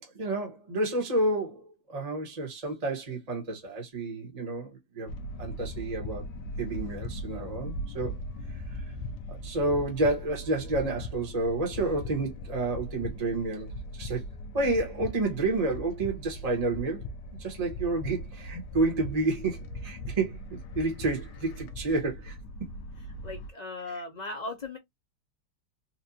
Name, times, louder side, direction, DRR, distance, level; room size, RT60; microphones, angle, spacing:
voice 1, 0.1-1.6 1.9-5.1 5.4-6.2 6.6-8.2 9.3-13.7 13.9-14.2 14.5-17.0 17.4-22.4 23.9-24.0, right 2 dB, 25° right, 1.3 m, -30 dB
sound 1, 5.1-23.5, equal, 80° left, 1.2 m, -39 dB
voice 2, 23.2-24.8, left 2 dB, 55° left, 0.4 m, -37 dB
4.3 x 2.5 x 2.7 m
omnidirectional pair, 1.9 m